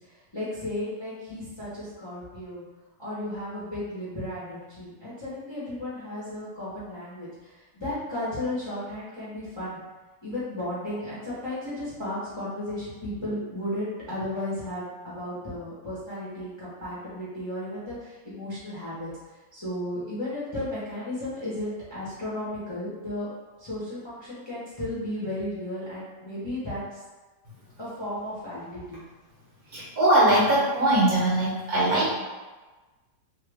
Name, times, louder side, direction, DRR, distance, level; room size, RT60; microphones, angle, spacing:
voice 1, 0.0-2.6 3.0-9.8 10.2-19.1 19.5-23.3 23.6-27.0 27.8-29.0, left 1 dB, 20° left, -11 dB, 0.7 m, -34 dB
voice 2, 29.7-32.1, right 1 dB, 60° right, -6 dB, 1.2 m, -21 dB
2.9 x 2.4 x 3.3 m, 1.2 s
omnidirectional pair, 1.9 m